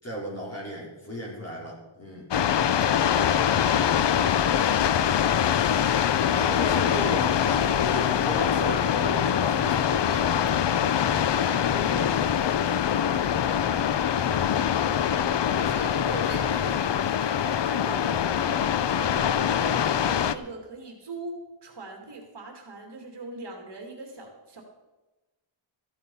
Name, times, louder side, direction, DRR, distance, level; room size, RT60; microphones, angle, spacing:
voice 1, 0.0-2.3 6.3-8.9 11.5-12.5, equal, 30° left, -3 dB, 4.7 m, -36 dB
sound 1, 2.3-20.3, left 9 dB, 55° left, 0.7 m, -24 dB
voice 2, 8.4-10.2 15.1-24.6, right 3 dB, 55° right, 2 dB, 2.5 m, -40 dB
14.5 x 9.9 x 5.5 m, 1.1 s
wide cardioid pair, 150°, 50 cm